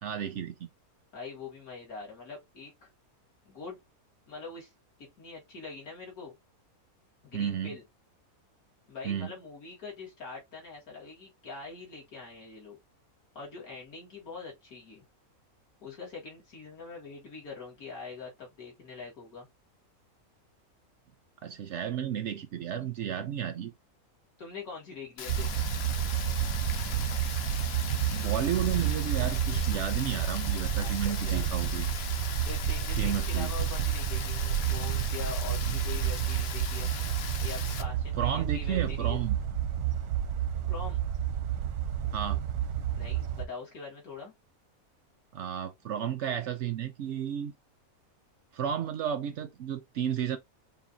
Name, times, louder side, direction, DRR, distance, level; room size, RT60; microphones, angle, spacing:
voice 1, 0.0-0.7 7.3-7.8 9.0-9.3 21.4-23.7 28.1-31.9 33.0-33.5 38.2-39.4 42.1-42.4 45.3-47.5 48.5-50.4, right 9 dB, 65° right, 0.7 m, -32 dB
voice 2, 1.1-2.9 3.5-3.8 4.3-4.7 5.0-6.4 7.2-7.8 8.9-12.8 13.3-15.0 15.8-19.5 24.4-25.5 30.7-31.5 32.4-36.9 37.4-39.2 40.7-41.1 43.0-44.3, left 4 dB, 75° left, 2.2 m, -43 dB
Rain, 25.2-37.8, left 7 dB, 55° left, 0.7 m, -39 dB
sound 1, 25.3-43.4, right 10 dB, 85° right, 1.2 m, -30 dB
5.5 x 2.5 x 2.6 m
omnidirectional pair, 1.5 m